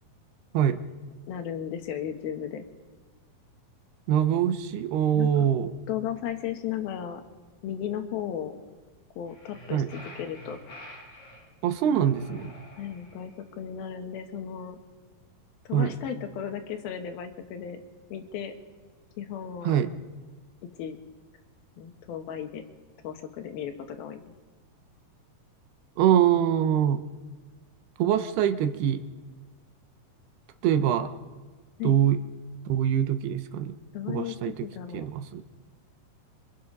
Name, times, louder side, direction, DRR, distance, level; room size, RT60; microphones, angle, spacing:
voice 1, 1.3-2.7 5.1-5.5 5.9-7.2 7.6-8.5 9.2-10.6 12.8-14.8 15.7-17.8 18.1-18.5 19.2-19.7 20.8-21.0 21.8-22.7 23.0-24.2 31.8-32.0 33.9-35.1, left 9 dB, 75° left, 6 dB, 3.1 m, -35 dB
voice 2, 4.1-5.7 9.7-9.9 11.6-12.5 15.7-15.9 19.6-19.9 26.0-27.0 28.0-29.0 30.6-31.1 31.8-32.2 32.7-33.8 34.1-34.5 34.9-35.4, right 10 dB, 90° right, 9 dB, 3.1 m, -24 dB
sound 1, 9.3-11.4 12.1-13.3, equal, 45° left, 8.4 m, -47 dB
24.5 x 24.5 x 5.4 m, 1.4 s
omnidirectional pair, 4.5 m